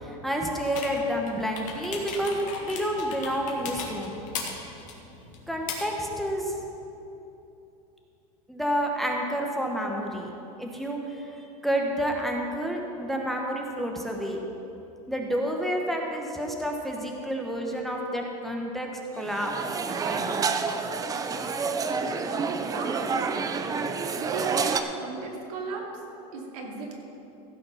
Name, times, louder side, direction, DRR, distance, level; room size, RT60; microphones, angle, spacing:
voice 1, 0.0-4.2 5.5-6.5 8.5-10.3 10.6-14.4 15.1-18.9 19.1-19.8 20.0-20.5, equal, ahead, 0 dB, 1.0 m, -29 dB
sound 1, 0.6-6.5, left 4 dB, 40° left, 2.1 m, -39 dB
sound 2, 19.2-24.8, right 5 dB, 20° right, 0.6 m, -28 dB
voice 2, 22.6-23.0 24.2-24.6 24.9-25.8 26.3-26.9, right 4 dB, 75° right, -1 dB, 2.5 m, -36 dB
15.5 x 6.5 x 5.7 m, 3.0 s
supercardioid pair, 130°, 19 cm